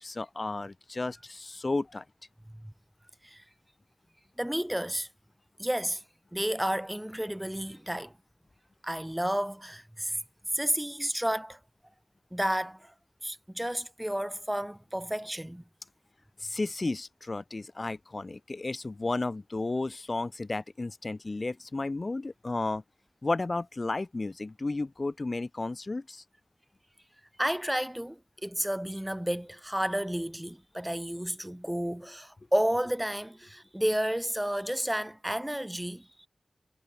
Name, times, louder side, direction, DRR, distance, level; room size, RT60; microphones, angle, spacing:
voice 1, 0.0-2.0 16.4-22.8 23.2-26.2, left 2 dB, 55° left, 1.3 m, -33 dB
voice 2, 4.4-5.1 5.6-6.0 6.3-8.1 8.8-10.2 10.5-11.6 12.3-12.9 13.2-15.6 27.4-36.3, equal, 10° right, 1.9 m, -31 dB
wide cardioid pair, 50°, 0 cm